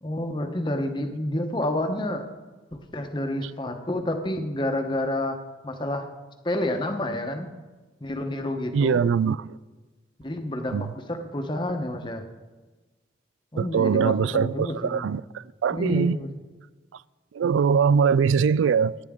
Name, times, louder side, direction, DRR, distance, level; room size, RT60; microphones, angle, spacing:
voice 1, 0.0-2.3 2.7-5.4 5.6-6.1 6.4-7.5 8.0-9.0 10.2-12.2 13.5-15.0 15.7-16.3, left 1 dB, 25° left, 0.9 m, -29 dB
voice 2, 8.7-9.4 10.7-10.9 13.6-15.2 15.6-16.2 17.3-19.0, right 6 dB, 90° right, 0.3 m, -22 dB
17.5 x 9.7 x 3.7 m
head